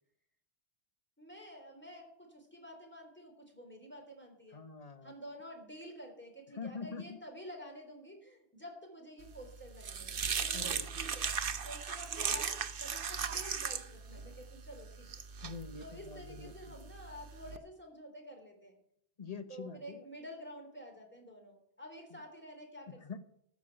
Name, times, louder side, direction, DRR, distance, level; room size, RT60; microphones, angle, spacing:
voice 1, 1.2-4.6 5.0-15.4 15.8-18.8 19.5-23.2, equal, 10° left, 0 dB, 3.6 m, -50 dB
voice 2, 4.5-5.1 6.5-7.2 10.5-10.9 15.4-16.9 19.2-20.0 22.9-23.2, left 5 dB, 40° left, 10 dB, 1.1 m, -45 dB
sound 1, 9.3-17.6, right 6 dB, 60° right, 1.0 m, -38 dB
13.5 x 6.5 x 9.0 m, 0.73 s
omnidirectional pair, 1.1 m